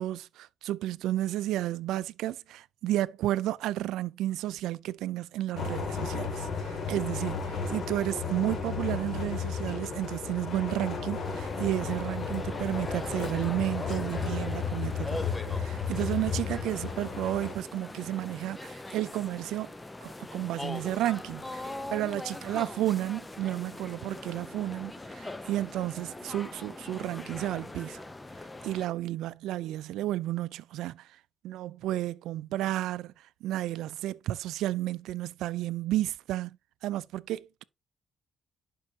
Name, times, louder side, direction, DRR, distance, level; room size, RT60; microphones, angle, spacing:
voice 1, 0.0-19.7 20.0-28.0 28.4-31.1 31.4-36.6 36.8-37.6, right 14 dB, 90° right, 0.4 m, -32 dB
sound 1, 5.6-17.5, left 5 dB, 50° left, 2.5 m, -34 dB
sound 2, 11.2-28.9, left 2 dB, 15° left, 0.8 m, -41 dB
11.0 x 5.4 x 2.8 m
cardioid pair, 90°, 0 cm